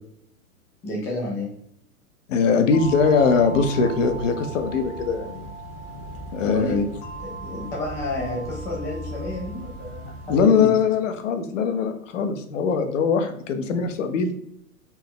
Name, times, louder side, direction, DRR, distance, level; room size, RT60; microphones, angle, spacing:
voice 1, 0.8-1.5 6.4-6.8 7.2-10.7, left 2 dB, 5° left, -3 dB, 0.3 m, -30 dB
voice 2, 2.3-5.5 6.3-6.8 10.3-14.3, left 5 dB, 60° left, 7 dB, 0.8 m, -21 dB
sound 1, 2.7-10.5, right 1 dB, 30° left, 1.0 m, -36 dB
4.4 x 2.8 x 3.6 m, 0.72 s
hypercardioid pair, 120°, 44 cm